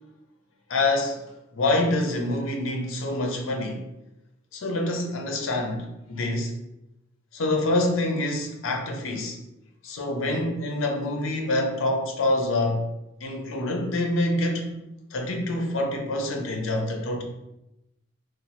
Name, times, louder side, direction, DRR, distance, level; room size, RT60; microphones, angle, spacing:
voice 1, 0.7-1.2 1.5-3.8 4.5-6.5 7.3-9.4 9.8-12.9 13.2-14.8 15.1-17.2, left 2 dB, 75° left, 2 dB, 0.6 m, -26 dB
3.0 x 2.0 x 2.9 m, 0.89 s
head